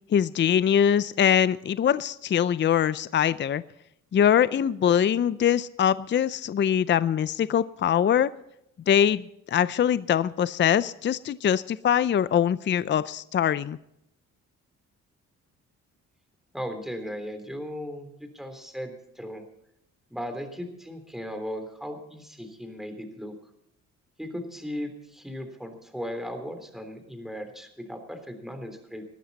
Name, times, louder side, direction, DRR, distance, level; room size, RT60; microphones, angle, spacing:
voice 1, 0.1-3.6 4.1-8.3 8.9-13.8, left 9 dB, 40° left, 16 dB, 0.5 m, -23 dB
voice 2, 16.5-19.4 20.1-23.3 24.2-29.0, equal, ahead, 7 dB, 3.4 m, -37 dB
20.0 x 12.5 x 4.1 m, 0.80 s
cardioid pair, 90°, 30 cm